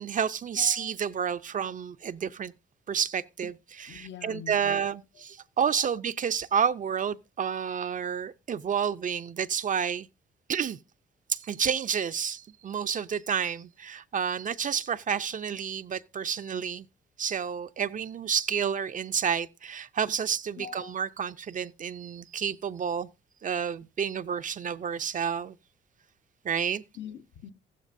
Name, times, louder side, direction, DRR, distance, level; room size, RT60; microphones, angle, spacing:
voice 1, 0.0-2.5 2.9-10.1 10.5-10.8 11.3-16.9 17.2-23.1 23.4-25.6 26.4-26.8, right 7 dB, 40° right, 0.5 m, -30 dB
voice 2, 0.5-0.9 3.9-4.8 20.6-20.9 26.9-27.5, left 8 dB, 65° left, 0.9 m, -43 dB
14.5 x 12.5 x 2.6 m
cardioid pair, 90°, 20 cm